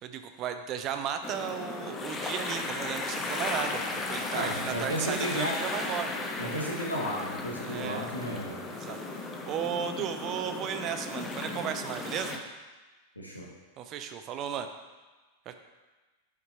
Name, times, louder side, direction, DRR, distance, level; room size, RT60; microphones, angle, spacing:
voice 1, 0.0-3.8 4.1-6.1 7.6-8.1 8.7-12.4 13.8-14.7 15.5-15.6, right 8 dB, 35° right, 8 dB, 0.5 m, -35 dB
sound 1, 1.2-12.4, left 3 dB, 20° left, 0.7 m, -35 dB
voice 2, 4.3-5.6 6.4-8.6 13.1-13.5, equal, 85° left, -2 dB, 1.3 m, -33 dB
5.5 x 5.2 x 4.2 m, 1.3 s
figure-of-eight pair, 90°, 0 cm